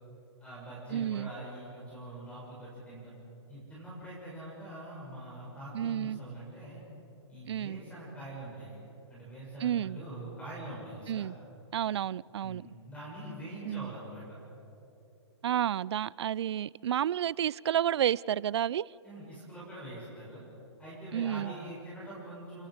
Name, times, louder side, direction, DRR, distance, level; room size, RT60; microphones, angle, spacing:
voice 1, 0.4-3.1 3.5-6.8 7.3-8.8 9.1-11.3 12.4-14.2 19.0-20.4 20.8-22.7, right 1 dB, 10° left, -6 dB, 7.0 m, -44 dB
voice 2, 0.9-1.3 5.7-6.2 7.5-7.8 9.6-10.0 11.1-11.4 11.7-12.7 13.6-13.9 15.4-18.9 21.1-21.5, right 10 dB, 65° right, 24 dB, 0.4 m, -31 dB
29.5 x 22.0 x 5.1 m, 3.0 s
hypercardioid pair, 140°, 15 cm